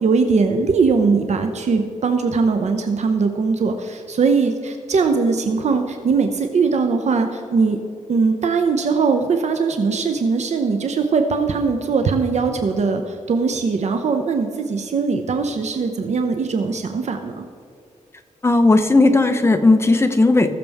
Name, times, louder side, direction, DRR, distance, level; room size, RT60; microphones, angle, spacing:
voice 1, 0.0-7.8 8.1-17.5, right 4 dB, 60° right, 6 dB, 0.8 m, -20 dB
voice 2, 18.4-20.5, left 2 dB, 20° left, 7 dB, 1.1 m, -15 dB
19.5 x 6.8 x 3.5 m, 2.4 s
cardioid pair, 95°, 13 cm